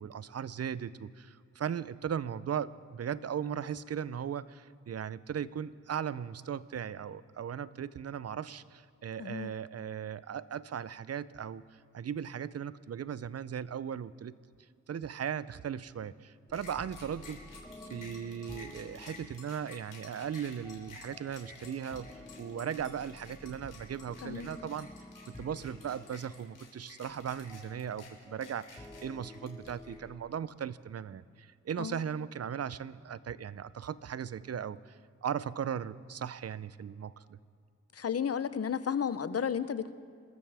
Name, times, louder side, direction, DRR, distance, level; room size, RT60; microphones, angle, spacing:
voice 1, 0.0-11.6 11.9-14.3 14.9-17.4 17.9-22.1 22.4-24.9 25.3-37.4, right 8 dB, 55° right, 17 dB, 0.6 m, -38 dB
voice 2, 9.2-9.5 24.2-24.5 31.8-32.0 37.9-39.9, left 7 dB, 50° left, 14 dB, 0.7 m, -33 dB
sound 1, 16.5-29.9, left 4 dB, 85° left, 3.4 m, -52 dB
sound 2, 16.5-30.2, left 2 dB, 10° left, 1.3 m, -52 dB
27.0 x 14.0 x 3.5 m, 2.3 s
cardioid pair, 50°, 31 cm